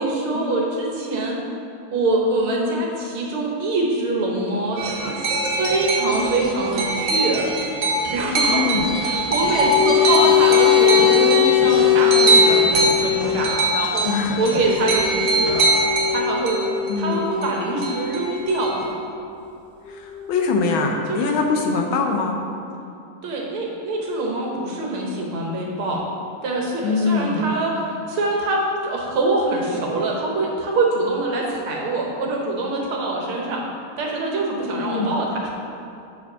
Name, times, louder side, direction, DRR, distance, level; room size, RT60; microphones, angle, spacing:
voice 1, 0.0-1.4 1.9-7.5 8.1-8.7 9.0-14.1 14.4-15.7 16.1-16.6 17.0-19.0 21.1-21.3 23.2-26.1 26.4-33.6 34.0-35.5, right 2 dB, 75° right, -1 dB, 1.9 m, -24 dB
sound 1, 4.7-7.6 9.6-13.5 14.6-18.3 19.8-20.5, left 11 dB, 40° left, 0.5 m, -21 dB
sound 2, 4.8-17.5 17.8-18.8, right 2 dB, 55° right, 0.9 m, -22 dB
voice 2, 8.5-8.9 14.0-14.5 16.9-17.3 19.9-22.4 26.8-27.5 34.8-35.2, left 4 dB, 75° left, 2 dB, 1.5 m, -23 dB
6.9 x 4.9 x 5.4 m, 2.6 s
omnidirectional pair, 2.4 m